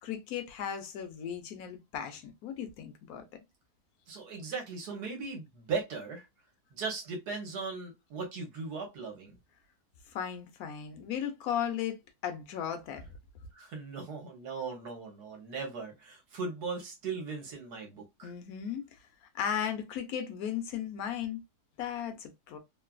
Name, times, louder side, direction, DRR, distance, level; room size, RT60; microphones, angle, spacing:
voice 1, 0.0-3.2 10.1-13.1 18.2-18.9 19.3-21.4 21.8-22.6, left 9 dB, 65° left, 1.1 m, -36 dB
voice 2, 4.1-6.2 6.7-9.4 13.5-18.3, right 4 dB, 70° right, 1.5 m, -38 dB
3.2 x 2.3 x 2.2 m
omnidirectional pair, 1.8 m